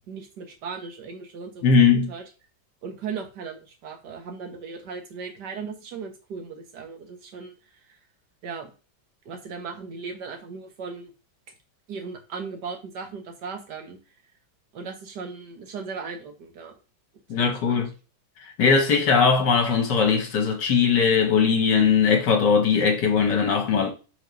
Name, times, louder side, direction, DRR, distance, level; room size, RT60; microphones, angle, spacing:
voice 1, 0.1-2.2 2.8-7.6 8.4-8.7 9.3-11.1 11.9-14.0 14.7-16.8 17.4-17.8, right 5 dB, 70° right, 1.8 m, -37 dB
voice 2, 1.6-2.1 17.3-17.9 18.6-23.9, left 5 dB, 70° left, 1.8 m, -20 dB
5.1 x 4.1 x 5.2 m
omnidirectional pair, 2.0 m